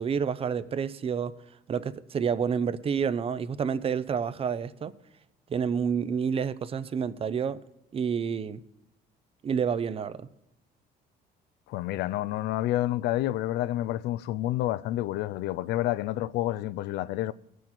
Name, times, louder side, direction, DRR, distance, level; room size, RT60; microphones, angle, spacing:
voice 1, 0.0-1.3 1.7-4.9 5.5-7.6 7.9-8.6 9.4-10.3, right 7 dB, 35° right, 0.5 m, -29 dB
voice 2, 11.7-17.3, left 14 dB, 80° left, 0.4 m, -29 dB
18.5 x 6.3 x 4.3 m
cardioid pair, 110°, 17 cm